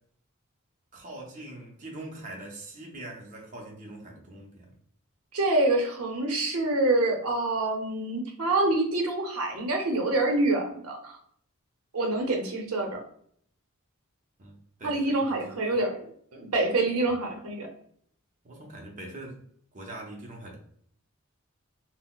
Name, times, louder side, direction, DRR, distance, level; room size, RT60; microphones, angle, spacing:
voice 1, 0.9-4.7 14.4-15.6 18.4-19.4 19.7-20.6, right 1 dB, 35° right, -1 dB, 0.5 m, -43 dB
voice 2, 5.3-11.2 11.9-13.0 14.8-16.0 16.3-17.7, right 2 dB, 85° right, 2 dB, 0.6 m, -26 dB
3.8 x 2.0 x 2.2 m, 0.63 s
head